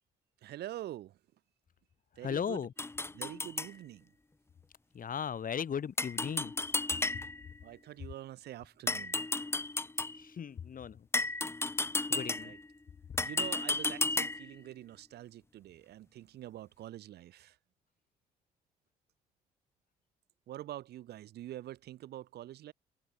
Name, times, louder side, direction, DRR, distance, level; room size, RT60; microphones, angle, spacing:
voice 1, 0.4-1.2 2.2-2.7 3.1-4.1 7.6-9.2 12.2-12.6 13.2-17.6 20.5-22.7, right 13 dB, 65° right, 1.8 m, -45 dB
voice 2, 2.2-2.7 4.9-6.5 10.2-11.1 12.1-12.5, left 7 dB, 50° left, 4.5 m, -37 dB
sound 1, 2.8-3.7 6.0-7.5 8.9-10.2 11.1-12.7 13.2-14.5, left 2 dB, 15° left, 0.8 m, -33 dB
hypercardioid pair, 45°, 18 cm